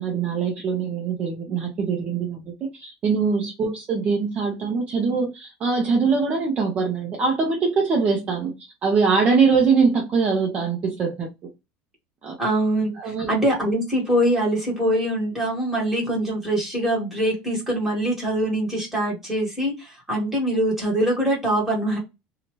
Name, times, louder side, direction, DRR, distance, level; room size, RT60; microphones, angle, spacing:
voice 1, 0.0-2.4 2.7-8.5 8.8-11.3 12.2-12.3 13.0-13.3, right 5 dB, 35° right, 0 dB, 0.7 m, -22 dB
voice 2, 12.4-22.0, right 1 dB, 5° right, -3 dB, 1.6 m, -23 dB
2.8 x 2.4 x 3.0 m, 0.23 s
cardioid pair, 145°, 4 cm